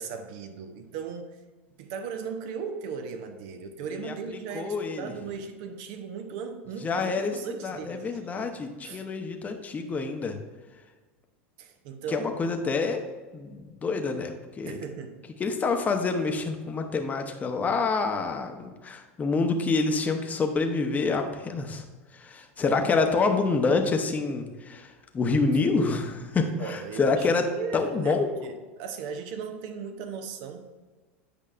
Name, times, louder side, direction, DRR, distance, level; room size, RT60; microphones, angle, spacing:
voice 1, 0.0-1.4 1.8-7.1 7.3-9.0 11.6-12.3 14.6-15.2 22.6-22.9 26.6-30.7, right 6 dB, 60° right, 7 dB, 0.9 m, -37 dB
voice 2, 4.5-5.1 6.8-7.3 7.6-10.3 12.1-13.0 13.3-14.8 15.4-21.8 22.1-27.4 27.7-28.3, left 4 dB, 25° left, 5 dB, 0.8 m, -27 dB
8.5 x 5.4 x 2.5 m, 1.3 s
hypercardioid pair, 100°, 7 cm